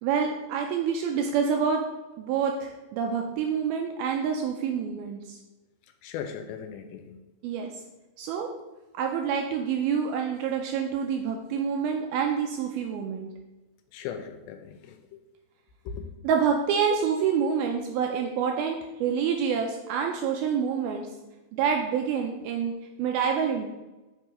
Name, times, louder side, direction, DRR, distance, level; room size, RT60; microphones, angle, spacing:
voice 1, 0.0-1.8 2.2-5.4 7.4-7.7 8.2-8.5 8.9-13.3 16.2-21.1 21.5-22.7 23.0-23.7, right 7 dB, 90° right, 2 dB, 2.2 m, -27 dB
voice 2, 6.0-7.1 13.9-15.2 15.9-16.1, left 7 dB, 85° left, 7 dB, 2.9 m, -38 dB
8.1 x 4.6 x 4.9 m, 1.1 s
omnidirectional pair, 4.9 m